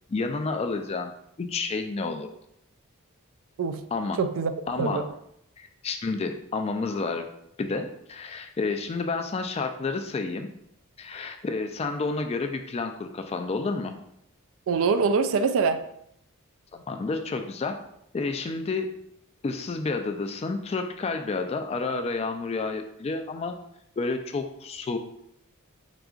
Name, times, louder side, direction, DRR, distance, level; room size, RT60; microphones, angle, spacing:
voice 1, 0.1-1.1 1.4-2.3 3.9-4.2 4.7-5.0 5.6-7.3 7.6-10.5 11.0-13.9 16.7-17.8 18.1-18.9 19.4-23.5 24.0-25.0, left 3 dB, 30° left, 6 dB, 0.3 m, -30 dB
voice 2, 4.2-4.5 4.8-5.1 14.7-15.9, right 5 dB, 65° right, 9 dB, 0.3 m, -24 dB
4.9 x 3.6 x 2.4 m, 0.76 s
head